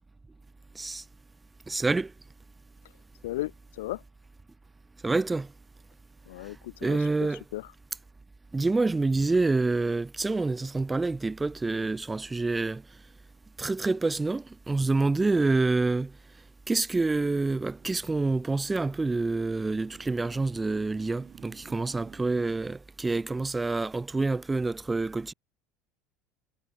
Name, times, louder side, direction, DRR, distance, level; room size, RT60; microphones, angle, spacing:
voice 1, 1.7-2.1 5.0-5.5 6.8-7.4 8.5-12.8 13.6-16.1 16.7-25.3, right 3 dB, 15° right, 1.9 m, -27 dB
voice 2, 3.2-4.0 6.3-7.7, left 17 dB, 85° left, 2.2 m, -36 dB
Motorcycle, 17.1-22.6, right 9 dB, 40° right, 8.0 m, -53 dB
hypercardioid pair, 85°, 0 cm